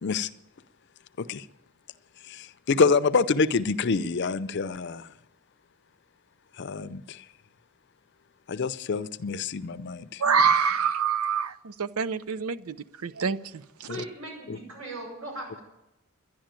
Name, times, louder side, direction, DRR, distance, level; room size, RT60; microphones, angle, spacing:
voice 1, 2.2-5.1 6.6-7.2 8.5-10.2 13.9-14.0 14.5-14.6, left 4 dB, 55° left, 0.5 m, -27 dB
voice 2, 10.2-12.8 13.0-13.6, right 6 dB, 90° right, 0.6 m, -25 dB
voice 3, 13.9-15.6, right 1 dB, 75° right, 7.2 m, -39 dB
11.5 x 11.0 x 9.0 m
head